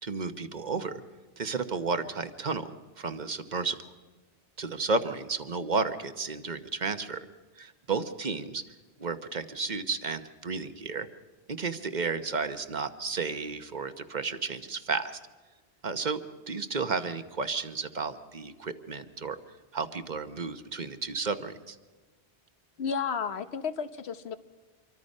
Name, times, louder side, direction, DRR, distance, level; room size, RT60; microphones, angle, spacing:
voice 1, 0.0-1.0 1.4-2.7 3.0-3.9 4.6-7.2 7.6-8.6 9.0-11.1 11.5-15.2 15.8-16.2 16.5-19.4 19.7-21.8, right 4 dB, 45° right, 10 dB, 1.1 m, -32 dB
voice 2, 22.8-24.3, left 6 dB, 75° left, 11 dB, 1.2 m, -32 dB
26.0 x 24.0 x 5.4 m, 1.3 s
omnidirectional pair, 1.1 m